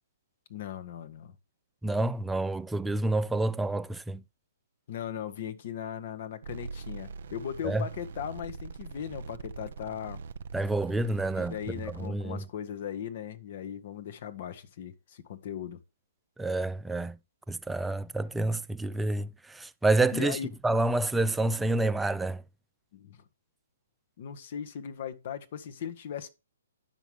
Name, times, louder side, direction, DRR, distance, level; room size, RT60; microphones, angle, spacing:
voice 1, 0.5-1.3 4.9-10.2 11.4-15.8 20.1-20.5 22.9-23.2 24.2-26.3, left 9 dB, 50° left, 1.5 m, -38 dB
voice 2, 1.8-4.2 7.6-7.8 10.5-11.6 12.0-12.4 16.4-17.2 17.5-20.4 20.6-22.4, right 2 dB, 5° right, 0.5 m, -28 dB
sound 1, 6.4-12.1, right 5 dB, 60° right, 0.9 m, -43 dB
11.0 x 6.1 x 3.5 m
figure-of-eight pair, 130°, 0 cm